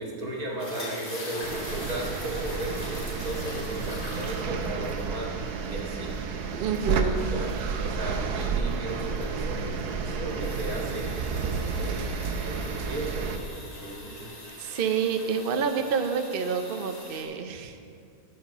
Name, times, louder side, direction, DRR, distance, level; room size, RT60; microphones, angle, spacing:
voice 1, 0.0-5.3 5.7-6.2 6.7-11.1 11.4-13.4 13.8-14.2, right 1 dB, 70° right, -1 dB, 2.2 m, -36 dB
sound 1, 0.6-17.2, left 1 dB, 35° left, 2.5 m, -43 dB
sound 2, 1.4-13.4, right 5 dB, 90° right, 1.3 m, -31 dB
voice 2, 6.5-7.4 14.6-17.7, right 6 dB, 55° right, 6 dB, 0.6 m, -28 dB
13.5 x 6.6 x 5.9 m, 2.4 s
omnidirectional pair, 1.6 m